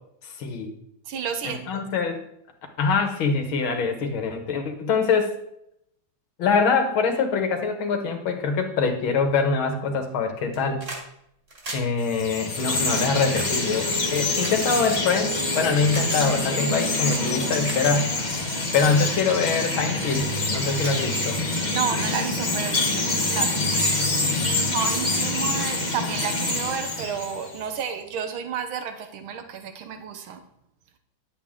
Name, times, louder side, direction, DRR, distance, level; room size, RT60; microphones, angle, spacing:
voice 1, 0.4-0.7 1.4-2.2 2.8-5.3 6.4-10.8 11.7-18.1 18.7-21.4, left 5 dB, 80° left, 5 dB, 2.1 m, -24 dB
voice 2, 1.1-1.8 21.7-23.9 24.4-30.4, right 7 dB, 90° right, 7 dB, 1.8 m, -31 dB
sound 1, 10.4-11.1 11.4-15.2 15.9-16.2 17.0-17.1 17.5-18.0 18.6-18.8 19.4-19.6 19.9-20.1 20.5-20.6 20.8-21.7 22.9-23.0, right 1 dB, 35° right, 2.7 m, -38 dB
Chirp tweet, 12.0-27.6, left 2 dB, 25° left, 1.3 m, -26 dB
Wind instrument woodwind instrument, 12.5-17.0, right 1 dB, 55° right, 2.8 m, -37 dB
10.5 x 8.2 x 3.6 m, 0.76 s
omnidirectional pair, 2.2 m